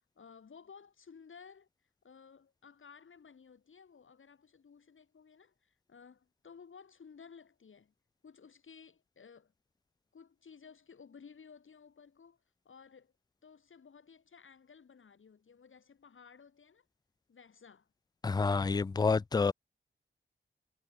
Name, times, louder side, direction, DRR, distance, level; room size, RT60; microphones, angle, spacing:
voice 1, 0.2-1.7 2.0-7.9 8.2-9.5 10.1-12.4 12.6-13.1 13.4-16.9 17.3-17.9, left 6 dB, 70° left, 8.0 m, -56 dB
voice 2, 18.2-19.5, left 4 dB, 20° left, 0.4 m, -28 dB
cardioid pair, 65°, 21 cm